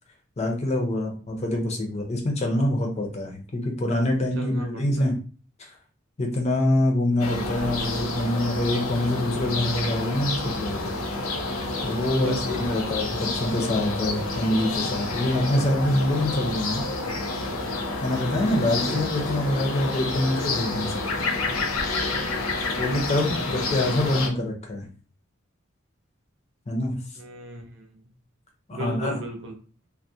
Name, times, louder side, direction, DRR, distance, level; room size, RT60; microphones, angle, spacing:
voice 1, 0.4-5.2 5.6-5.7 6.2-10.9 11.8-16.8 17.4-17.5 18.0-21.0 22.8-24.9 26.7-26.9 28.7-29.2, left 1 dB, 35° left, 1 dB, 0.6 m, -25 dB
voice 2, 4.4-5.1 12.1-13.0 22.8-24.1 27.1-28.1 28.7-29.6, right 2 dB, 65° right, 2 dB, 0.6 m, -37 dB
sound 1, 7.2-24.3, left 2 dB, 90° left, 0.5 m, -29 dB
2.3 x 2.1 x 2.7 m, 0.38 s
head